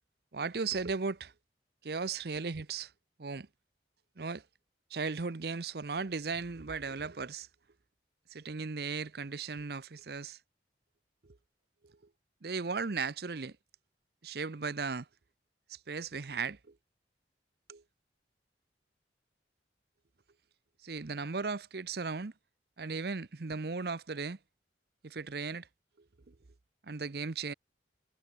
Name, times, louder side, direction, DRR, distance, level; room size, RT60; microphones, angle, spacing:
voice 1, 0.3-1.3 1.8-2.9 3.2-3.5 4.2-4.4 4.9-7.5 8.3-10.4 11.2-11.4 11.8-11.9 12.4-13.6 14.2-15.1 15.7-16.7 17.7-17.8 20.8-22.3 22.8-24.4 25.0-25.7 26.3-26.4 26.8-27.5, right 4 dB, 60° right, 0.7 m, -36 dB
head